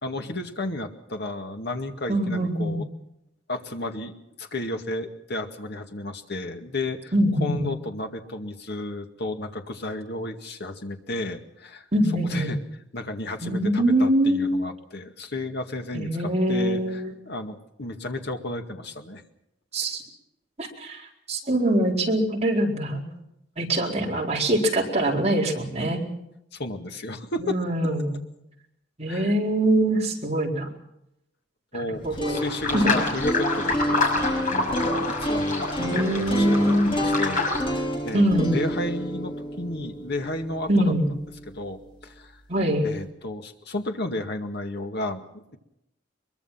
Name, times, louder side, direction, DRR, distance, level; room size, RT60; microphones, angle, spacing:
voice 1, 0.0-2.8 3.5-7.1 7.4-11.9 12.3-12.6 12.9-19.2 26.5-27.6 29.1-29.3 31.7-40.9 41.5-42.4 42.8-45.6, left 2 dB, 60° left, 5 dB, 2.2 m, -33 dB
voice 2, 2.1-2.8 7.1-7.7 11.9-12.5 13.4-14.6 15.9-17.1 19.7-20.0 20.6-23.0 23.6-26.0 27.4-28.2 29.0-30.7 31.7-32.4 32.7-32.9 35.8-36.9 38.1-38.6 40.7-41.1 42.5-42.9, right 1 dB, 35° right, -1 dB, 4.5 m, -23 dB
sound 1, 31.9-42.0, equal, 30° left, 4.4 m, -30 dB
sound 2, 32.3-37.6, left 3 dB, 45° left, 5.8 m, -27 dB
23.0 x 22.5 x 5.9 m, 0.82 s
head